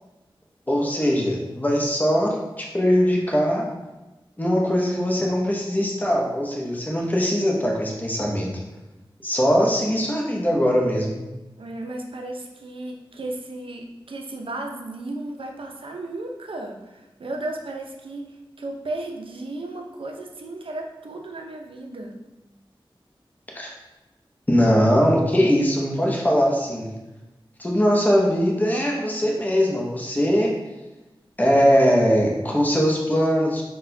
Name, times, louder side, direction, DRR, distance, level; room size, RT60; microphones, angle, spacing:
voice 1, 0.7-3.7 4.4-8.5 9.2-11.2 23.5-23.7 24.5-26.9 27.6-30.5 31.4-33.6, equal, 20° left, -2 dB, 0.7 m, -21 dB
voice 2, 11.6-18.2 18.6-22.2, right 2 dB, 70° right, 2 dB, 0.5 m, -34 dB
4.0 x 2.2 x 2.6 m, 1.1 s
cardioid pair, 45°, 9 cm